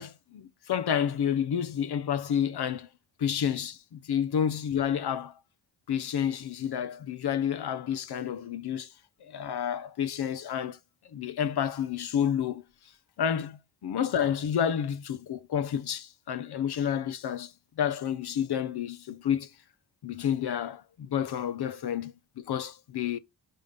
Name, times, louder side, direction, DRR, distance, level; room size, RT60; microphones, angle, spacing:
voice 1, 0.0-2.9 3.2-5.4 5.9-8.9 9.2-10.8 11.0-12.6 13.2-19.5 20.0-23.2, left 9 dB, 60° left, 1.0 m, -30 dB
5.7 x 5.2 x 5.6 m
cardioid pair, 125°, 45 cm